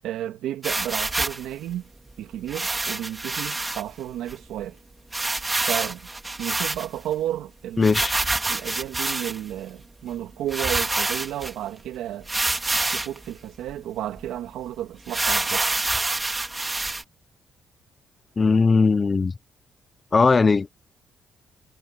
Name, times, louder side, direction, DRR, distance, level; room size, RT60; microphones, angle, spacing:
voice 1, 0.0-1.9 2.2-4.8 5.6-6.1 6.4-7.9 8.5-12.3 12.7-15.7, right 12 dB, 85° right, 2.7 m, -32 dB
sound 1, 0.6-1.4 2.5-3.8 4.3-4.4 4.6-4.7 5.1-7.1 7.8-9.5 10.1-10.2 10.5-11.5 12.3-13.2 13.7-13.8 14.2-14.3 15.1-17.0, right 2 dB, 20° right, 2.9 m, -26 dB
voice 2, 7.8-8.2 18.4-19.3 20.1-20.7, left 4 dB, 30° left, 0.8 m, -19 dB
cardioid pair, 90°, 0 cm